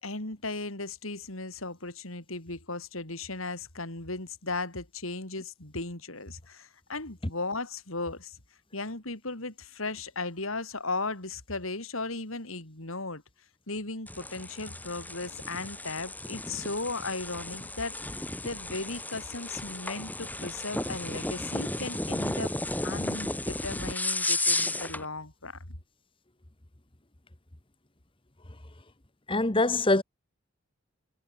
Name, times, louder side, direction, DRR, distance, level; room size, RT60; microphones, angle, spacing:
voice 1, 0.0-8.4 8.7-13.2 13.7-18.0 18.4-22.5 22.8-25.6, left 3 dB, 75° left, 4.7 m, -36 dB
sound 1, 14.1-25.0, left 2 dB, 10° left, 4.1 m, -33 dB
voice 2, 29.3-30.0, left 2 dB, 25° left, 1.5 m, -23 dB
head